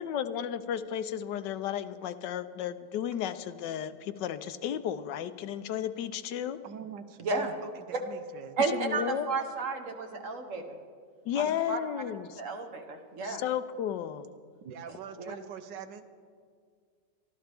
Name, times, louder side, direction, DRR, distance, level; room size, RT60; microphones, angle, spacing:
voice 1, 0.0-6.6 8.7-9.3 11.2-12.4 13.2-14.3, left 9 dB, 75° left, 12 dB, 1.2 m, -33 dB
voice 2, 6.6-8.6 14.6-16.0, right 7 dB, 80° right, 10 dB, 1.4 m, -44 dB
voice 3, 7.2-7.5 8.6-10.8 11.4-11.8 12.4-13.4 15.2-15.4, right 4 dB, 50° right, 5 dB, 1.3 m, -32 dB
23.0 x 13.5 x 3.4 m, 2.1 s
omnidirectional pair, 1.9 m